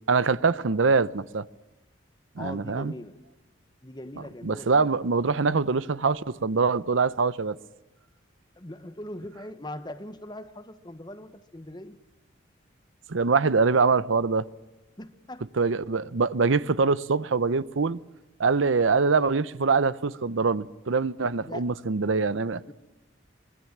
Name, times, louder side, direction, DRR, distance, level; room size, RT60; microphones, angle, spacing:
voice 1, 0.1-1.4 2.4-2.9 4.4-7.6 13.1-14.5 15.6-18.0 18.4-22.7, right 4 dB, 90° right, 0.7 m, -24 dB
voice 2, 2.4-3.2 3.8-4.9 8.6-12.0 15.0-15.7 21.4-21.6 22.7-22.8, left 1 dB, 20° left, 1.2 m, -41 dB
25.0 x 22.0 x 7.3 m
head